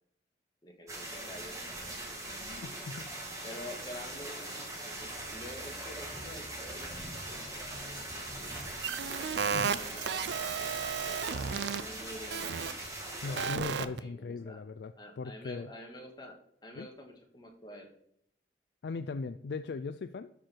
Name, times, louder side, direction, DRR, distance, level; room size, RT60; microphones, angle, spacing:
voice 1, 0.6-2.2 3.4-7.0 7.3-8.8 9.3-10.8 11.1-12.5 13.2-14.6 14.9-16.4 16.6-17.9, left 1 dB, 25° left, 1 dB, 1.7 m, -48 dB
sound 1, 0.9-13.5, right 1 dB, 20° right, 2.0 m, -41 dB
voice 2, 2.4-3.1 9.5-9.8 13.2-15.7 16.8-16.9 18.8-20.3, left 4 dB, 70° left, 11 dB, 0.4 m, -39 dB
sound 2, 8.4-11.8 12.3-12.7 13.4-14.0, right 7 dB, 85° right, 0.5 m, -33 dB
12.5 x 4.5 x 4.5 m, 0.71 s
head